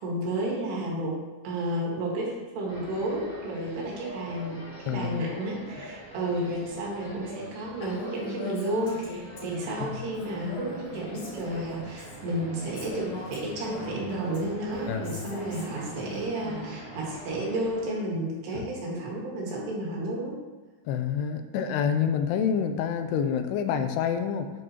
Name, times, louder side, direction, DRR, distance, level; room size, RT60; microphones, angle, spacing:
voice 1, 0.0-20.4, right 1 dB, 80° right, -3 dB, 4.1 m, -32 dB
sound 1, 2.7-17.9, equal, ahead, 1.9 m, -45 dB
voice 2, 4.9-5.2 14.9-15.4 18.5-18.7 20.9-24.5, left 7 dB, 85° left, 7 dB, 2.7 m, -27 dB
Female speech woman speaking, 7.8-9.8 10.2-12.2 12.6-16.8, left 1 dB, 45° left, 3.2 m, -40 dB
9.8 x 8.5 x 3.0 m, 1.2 s
omnidirectional pair, 4.7 m